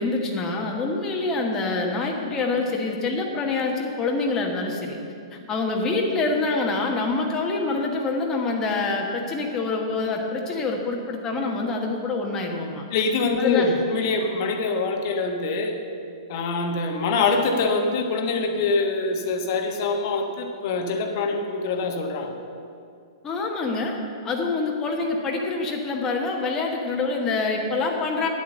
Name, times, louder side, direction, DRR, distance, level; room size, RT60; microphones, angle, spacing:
voice 1, 0.0-5.0 5.3-12.8 13.4-13.8 23.2-24.0 24.2-28.3, left 3 dB, 20° left, 0 dB, 1.3 m, -26 dB
voice 2, 12.9-15.7 16.3-22.3, left 3 dB, 45° left, 4 dB, 1.3 m, -24 dB
10.0 x 8.1 x 6.7 m, 2.4 s
figure-of-eight pair, 110°, 3 cm